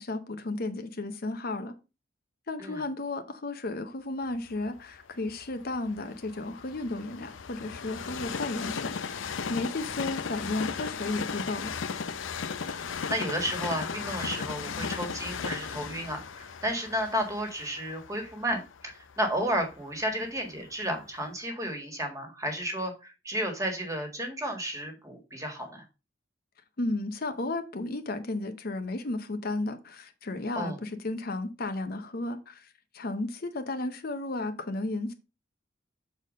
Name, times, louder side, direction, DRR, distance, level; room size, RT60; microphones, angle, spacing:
voice 1, 0.0-1.7 2.5-11.7 26.8-35.1, left 2 dB, 50° left, 0.8 m, -34 dB
Train, 4.5-20.5 21.1-21.2, left 6 dB, 85° left, 0.6 m, -36 dB
voice 2, 13.1-25.8 30.6-30.8, equal, 15° right, 1.7 m, -32 dB
6.9 x 4.3 x 5.0 m
head